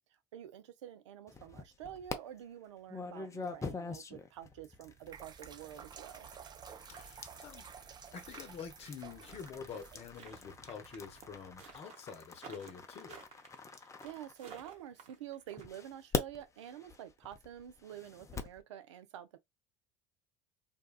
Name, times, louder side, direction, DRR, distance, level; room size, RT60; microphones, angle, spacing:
voice 1, 0.3-6.3 13.7-19.4, right 11 dB, 85° right, 0.5 m, -48 dB
sound 1, 1.3-2.2 2.9-14.9 15.6-18.6, left 4 dB, 20° left, 0.6 m, -44 dB
sound 2, 4.8-11.8, right 7 dB, 30° right, 0.4 m, -53 dB
voice 2, 6.9-7.6 8.1-13.2, left 6 dB, 45° left, 0.8 m, -47 dB
sound 3, 9.7-15.6, right 6 dB, 50° right, 1.0 m, -53 dB
2.7 x 2.3 x 2.3 m
hypercardioid pair, 75°, 15 cm